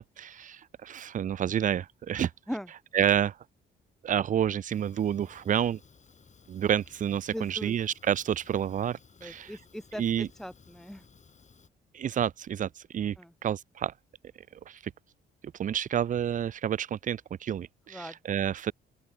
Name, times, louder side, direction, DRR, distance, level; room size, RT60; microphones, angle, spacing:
voice 1, 0.0-2.3 2.9-3.4 4.0-5.8 6.5-9.5 10.0-10.3 11.9-13.2 13.4-13.9 14.7-14.9 15.6-18.7, right 9 dB, 40° right, 0.5 m, -29 dB
voice 2, 2.2-2.7 7.3-7.8 9.2-11.1 13.2-13.3 17.9-18.2, equal, ahead, 1.7 m, -40 dB
Fire, 4.7-11.7, left 5 dB, 35° left, 4.1 m, -58 dB
open air
cardioid pair, 90°, 20 cm